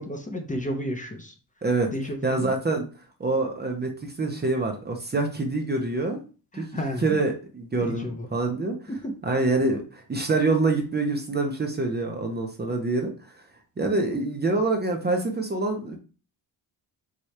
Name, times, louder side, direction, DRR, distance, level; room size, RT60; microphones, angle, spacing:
voice 1, 0.0-1.3 1.9-2.5 6.5-7.2 7.8-8.3 8.9-9.1, equal, 20° left, 4 dB, 0.6 m, -32 dB
voice 2, 2.2-2.9 3.2-6.2 6.6-6.7 7.0-8.8 9.2-13.1 13.8-16.0, right 3 dB, 25° right, 3 dB, 0.6 m, -26 dB
4.8 x 2.3 x 4.1 m, 0.35 s
wide cardioid pair, 160°, 41 cm